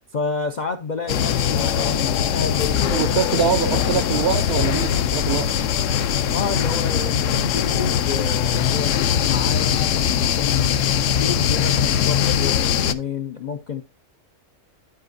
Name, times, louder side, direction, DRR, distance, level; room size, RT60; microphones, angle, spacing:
voice 1, 0.1-3.2 6.3-10.9 11.2-13.8, left 5 dB, 80° left, 0.4 m, -29 dB
sound 1, 1.1-12.9, left 9 dB, 65° left, 0.8 m, -21 dB
voice 2, 2.9-5.5, right 8 dB, 65° right, 0.6 m, -24 dB
11.5 x 4.9 x 2.6 m
omnidirectional pair, 1.5 m